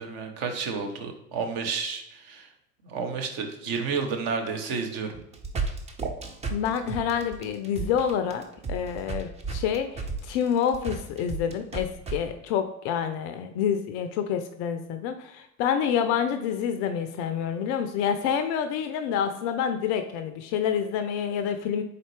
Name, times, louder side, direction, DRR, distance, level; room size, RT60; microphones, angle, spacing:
voice 1, 0.0-2.5 2.8-5.2, right 5 dB, 45° right, 4 dB, 1.0 m, -31 dB
sound 1, 5.1-12.2, right 4 dB, 15° right, 0.5 m, -33 dB
voice 2, 6.5-8.4 8.7-21.8, left 8 dB, 40° left, 8 dB, 0.4 m, -28 dB
4.1 x 4.0 x 3.1 m, 0.83 s
figure-of-eight pair, 80°, 43 cm